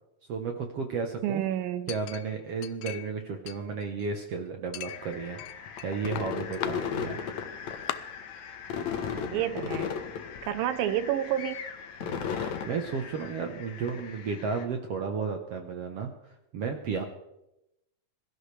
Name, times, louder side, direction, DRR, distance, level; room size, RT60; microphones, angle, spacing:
voice 1, 0.3-1.4 1.9-5.4 5.8-7.2 12.0-17.0, right 5 dB, 65° right, 4 dB, 1.6 m, -33 dB
voice 2, 1.2-1.9 8.7-10.0 10.5-11.7, right 11 dB, 90° right, 12 dB, 2.6 m, -30 dB
Chink clink, 1.9-3.2 3.5-4.3 4.7-5.9 6.2-6.7 7.4-7.5 7.9-8.0, left 14 dB, 85° left, 2.4 m, -39 dB
sound 1, 4.9-14.6, left 7 dB, 65° left, 2.4 m, -36 dB
22.5 x 13.5 x 3.3 m, 0.89 s
omnidirectional pair, 4.0 m